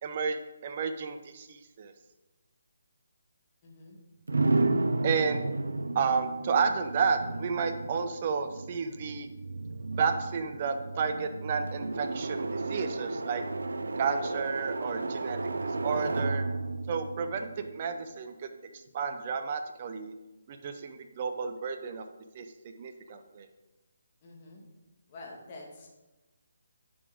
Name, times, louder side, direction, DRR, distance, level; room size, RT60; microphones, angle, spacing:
voice 1, 0.0-1.9 5.0-5.4 5.9-9.3 10.0-13.4 14.0-15.4 15.8-16.4 16.9-18.5 18.9-20.1 20.5-22.0 22.3-23.5, right 5 dB, 40° right, 7 dB, 0.7 m, -31 dB
voice 2, 3.6-4.0 24.2-24.6 25.1-25.9, left 2 dB, 30° left, -2 dB, 1.9 m, -47 dB
sound 1, 4.3-18.1, right 2 dB, 75° right, 0.5 m, -33 dB
10.5 x 5.2 x 3.6 m, 1.1 s
figure-of-eight pair, 150°, 0 cm